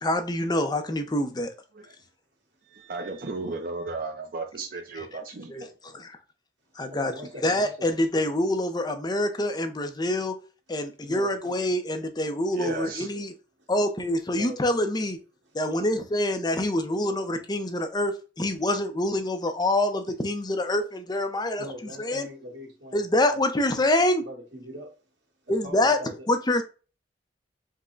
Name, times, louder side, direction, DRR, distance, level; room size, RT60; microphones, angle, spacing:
voice 1, 0.0-1.5 5.5-6.2 6.8-7.1 7.4-10.3 10.7-13.3 13.7-15.2 15.5-21.6 22.0-22.3 22.9-24.2 25.5-26.0 26.3-26.6, left 1 dB, 25° left, 0.6 m, -26 dB
voice 2, 2.7-5.7 12.5-13.1, right 3 dB, 55° right, 0.6 m, -35 dB
voice 3, 6.9-7.9 10.8-11.4 12.6-12.9 13.6-13.7 14.3-14.6 15.4-15.6 21.6-23.4 24.2-25.0 25.4-26.3, equal, 85° right, 1.8 m, -42 dB
5.3 x 2.2 x 3.8 m
head